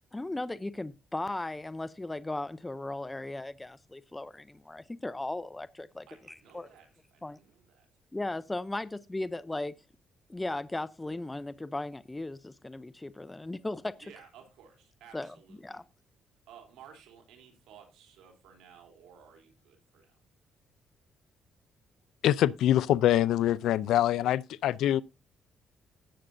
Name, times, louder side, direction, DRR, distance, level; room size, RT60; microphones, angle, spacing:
voice 1, 0.1-6.7 7.2-7.4 8.1-9.7 10.3-14.1 15.1-15.4 15.6-15.8, left 2 dB, 15° left, 0.6 m, -37 dB
voice 2, 6.1-7.9 14.0-15.8 16.5-20.2, right 8 dB, 90° right, 3.3 m, -55 dB
voice 3, 22.2-25.0, left 12 dB, 80° left, 0.5 m, -24 dB
16.5 x 7.5 x 2.7 m
cardioid pair, 90°, 0 cm